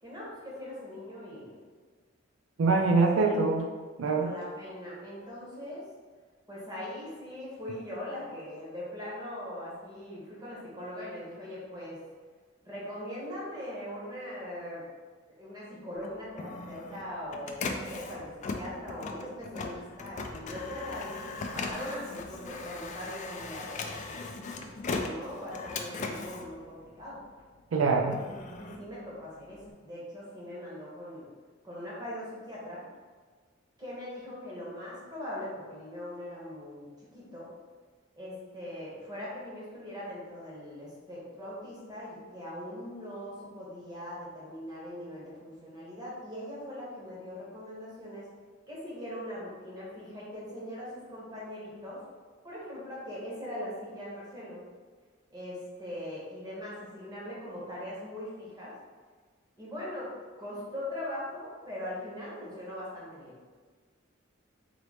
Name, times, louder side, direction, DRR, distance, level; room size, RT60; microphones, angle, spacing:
voice 1, 0.0-1.6 2.9-3.4 4.2-5.8 6.5-12.0 12.6-14.8 15.4-27.2 28.2-31.3 31.6-32.8 33.8-37.5 38.2-48.3 48.7-52.0 52.4-54.6 55.3-58.7 59.6-60.1 60.4-63.4, left 1 dB, 20° right, -7 dB, 1.4 m, -41 dB
voice 2, 2.6-3.6 4.0-4.3 27.7-28.2, right 3 dB, 90° right, 2 dB, 0.4 m, -24 dB
Printer, 16.0-27.4 27.8-29.7, left 3 dB, 40° left, 0.3 m, -39 dB
3.9 x 3.1 x 3.2 m, 1.5 s
head